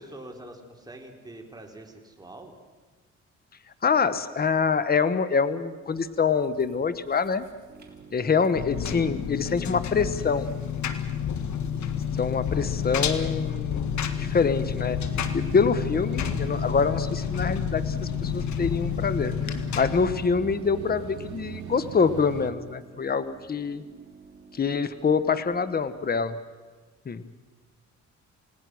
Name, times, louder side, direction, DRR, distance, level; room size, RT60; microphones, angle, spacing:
voice 1, 0.0-2.6, right 1 dB, 15° right, 2 dB, 4.1 m, -44 dB
voice 2, 3.8-7.5 8.1-10.5 12.1-13.9 14.2-15.0 15.3-19.3 19.8-23.8 24.5-26.3 27.1-27.2, left 5 dB, 30° left, 13 dB, 1.2 m, -25 dB
sound 1, 5.9-22.5, right 10 dB, 75° right, 1.3 m, -42 dB
sound 2, 7.7-26.2, right 4 dB, 30° right, 3.9 m, -50 dB
Engine, 8.5-20.2, left 8 dB, 65° left, 1.8 m, -29 dB
29.0 x 18.5 x 6.3 m, 1.4 s
cardioid pair, 90°, 30 cm